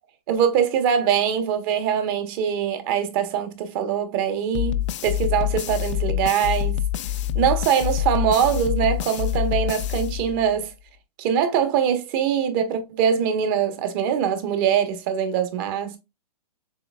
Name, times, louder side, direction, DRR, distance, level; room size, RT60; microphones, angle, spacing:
voice 1, 0.3-6.8 7.3-10.7 11.2-16.0, right 8 dB, 35° right, 1.1 m, -23 dB
sound 1, 4.5-10.7, left 11 dB, 50° left, 0.5 m, -26 dB
6.9 x 3.2 x 2.3 m
hypercardioid pair, 140°, 21 cm